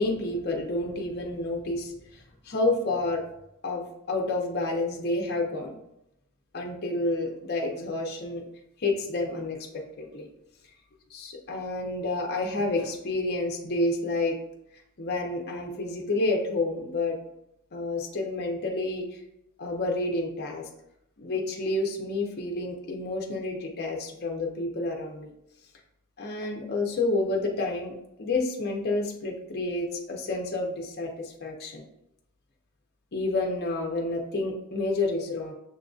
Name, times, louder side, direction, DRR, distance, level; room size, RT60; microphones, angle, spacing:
voice 1, 0.0-1.9 2.4-3.2 3.6-5.7 6.5-8.4 8.8-10.3 11.1-14.4 15.0-17.2 17.7-19.1 19.6-20.6 21.2-25.3 26.2-27.9 28.2-31.8 33.1-35.5, left 2 dB, 45° left, 1 dB, 0.6 m, -29 dB
6.7 x 2.5 x 2.3 m, 0.82 s
head